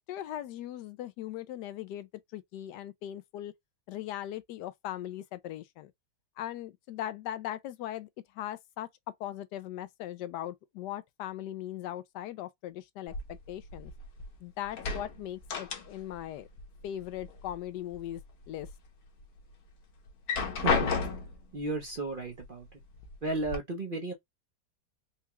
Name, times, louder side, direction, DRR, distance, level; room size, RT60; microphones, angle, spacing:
voice 1, 0.0-3.5 3.9-5.9 6.4-8.9 9.2-13.9 14.4-16.5 16.8-18.2 18.5-18.7, left 12 dB, 85° left, 1.2 m, -39 dB
sound 1, 13.1-14.3 14.6-16.3 16.5-17.5 17.9-18.7 19.2-19.3 20.1-21.5 22.4-22.5 22.9-23.6, left 4 dB, 65° left, 1.5 m, -32 dB
voice 2, 21.5-22.7 23.2-24.1, right 3 dB, 40° right, 0.8 m, -34 dB
4.5 x 2.3 x 2.9 m
omnidirectional pair, 1.8 m